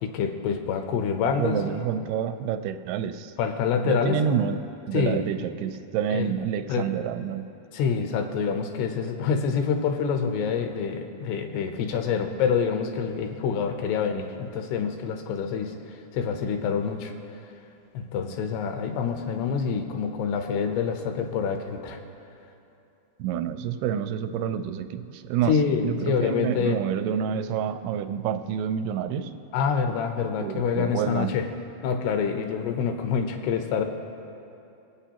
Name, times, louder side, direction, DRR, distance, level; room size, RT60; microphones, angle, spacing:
voice 1, 0.0-1.9 3.4-4.2 4.9-5.2 6.1-6.3 6.7-6.9 7.7-15.7 16.1-17.1 17.9-22.0 25.5-26.8 29.5-31.5 31.8-33.8, left 6 dB, 85° left, 6 dB, 2.7 m, -26 dB
voice 2, 1.4-3.3 3.9-4.6 4.9-7.5 23.2-25.5 25.8-29.3 30.4-31.3, right 8 dB, 85° right, 9 dB, 2.5 m, -28 dB
24.5 x 8.2 x 2.9 m, 2.7 s
omnidirectional pair, 4.6 m